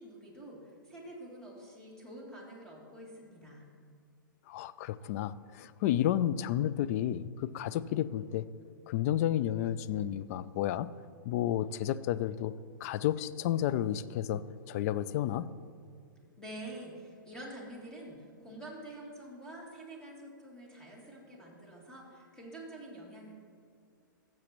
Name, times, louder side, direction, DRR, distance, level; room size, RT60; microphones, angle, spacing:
voice 1, 0.0-3.7 16.4-23.3, right 1 dB, 5° left, -3 dB, 2.6 m, -47 dB
voice 2, 4.5-8.5 8.9-10.9 11.2-12.5 12.8-14.4 14.7-15.5, left 11 dB, 45° left, 15 dB, 0.4 m, -31 dB
17.5 x 7.5 x 3.0 m, 2.3 s
hypercardioid pair, 115°, 11 cm